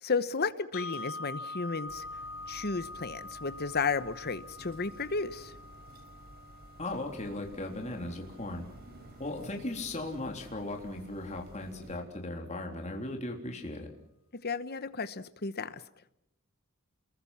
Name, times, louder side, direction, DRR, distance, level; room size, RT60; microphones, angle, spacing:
voice 1, 0.0-2.1 2.5-5.5 14.4-15.8, left 4 dB, 50° left, 14 dB, 1.1 m, -33 dB
sound 1, 0.7-8.8, left 2 dB, 75° left, 3.0 m, -45 dB
sound 2, 1.9-12.0, right 1 dB, 45° right, 5.0 m, -52 dB
voice 2, 6.8-8.7 9.2-13.9, left 2 dB, 35° left, 2 dB, 3.6 m, -37 dB
29.5 x 22.0 x 5.8 m, 0.80 s
head